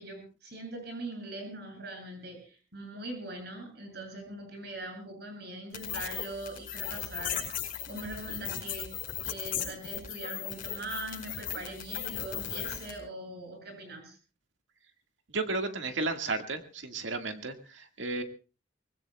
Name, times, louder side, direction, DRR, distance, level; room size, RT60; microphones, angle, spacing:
voice 1, 0.0-7.4 7.9-8.9 9.2-14.2, right 2 dB, 60° right, 2 dB, 7.8 m, -41 dB
sound 1, 5.7-13.0, left 9 dB, 50° left, 5.4 m, -37 dB
voice 2, 15.3-18.2, right 3 dB, 85° right, 5 dB, 1.9 m, -33 dB
24.5 x 20.5 x 2.3 m, 0.35 s
head